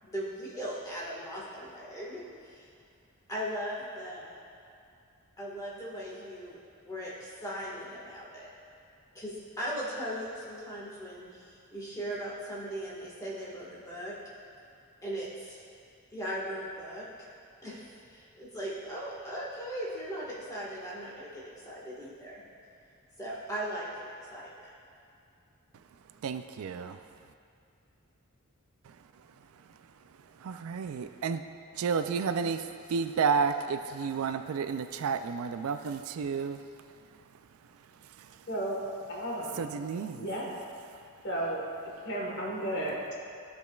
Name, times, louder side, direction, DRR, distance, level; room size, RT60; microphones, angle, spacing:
voice 1, 0.0-2.7 3.3-4.4 5.4-8.5 9.1-14.1 15.0-15.6 16.1-17.3 17.6-22.4 23.2-24.7, equal, 15° left, -7 dB, 1.5 m, -38 dB
voice 2, 26.2-27.0 30.4-31.4 31.7-36.6 38.2-38.3 39.6-40.3, right 5 dB, 70° right, 9 dB, 0.3 m, -31 dB
voice 3, 38.5-38.8 39.1-39.7 40.1-40.6 41.2-41.6 42.0-43.1, right 1 dB, 50° left, -3 dB, 1.4 m, -33 dB
14.0 x 5.0 x 2.3 m, 2.5 s
head